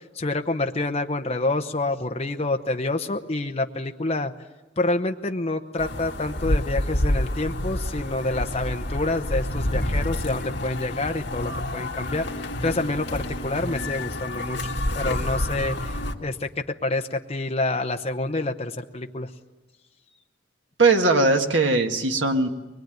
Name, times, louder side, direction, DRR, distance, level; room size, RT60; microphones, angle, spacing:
voice 1, 0.1-4.3 4.8-12.3 12.6-14.6 14.9-19.3, left 2 dB, 35° left, 5 dB, 0.9 m, -27 dB
sound 1, 5.8-16.1, left 1 dB, 65° left, 2.0 m, -28 dB
voice 2, 20.8-22.5, right 3 dB, 80° right, 5 dB, 1.9 m, -19 dB
23.0 x 21.5 x 9.3 m, 1.2 s
head